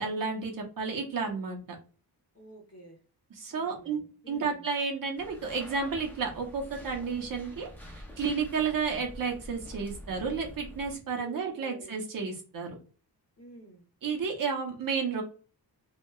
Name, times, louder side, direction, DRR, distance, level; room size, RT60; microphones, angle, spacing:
voice 1, 0.0-1.6 3.4-4.0 4.3-7.7 8.2-12.7 14.0-15.2, right 5 dB, 55° right, 2 dB, 0.7 m, -31 dB
voice 2, 2.3-3.0 3.5-4.7 11.2-11.9 13.4-13.9, right 1 dB, 40° left, -1 dB, 0.9 m, -50 dB
sound 1, 5.2-10.9, left 1 dB, 5° left, 0.4 m, -47 dB
2.7 x 2.2 x 2.2 m, 0.38 s
wide cardioid pair, 175°, 41 cm